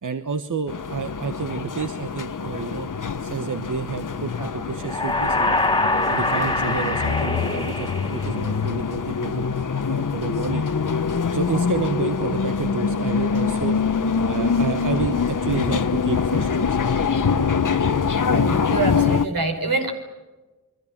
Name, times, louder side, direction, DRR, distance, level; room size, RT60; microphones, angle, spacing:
voice 1, 0.0-2.9 3.2-5.6 6.0-9.5 9.8-10.6 11.3-13.8 14.3-17.0, right 5 dB, 65° right, 9 dB, 1.2 m, -29 dB
sound 1, 0.7-19.3, left 6 dB, 65° left, 1.1 m, -24 dB
sound 2, 4.8-8.7, left 2 dB, 15° left, 2.3 m, -24 dB
voice 2, 18.3-19.9, right 3 dB, 90° right, 4 dB, 5.0 m, -25 dB
29.0 x 22.5 x 7.4 m, 1.2 s
wide cardioid pair, 70°, 34 cm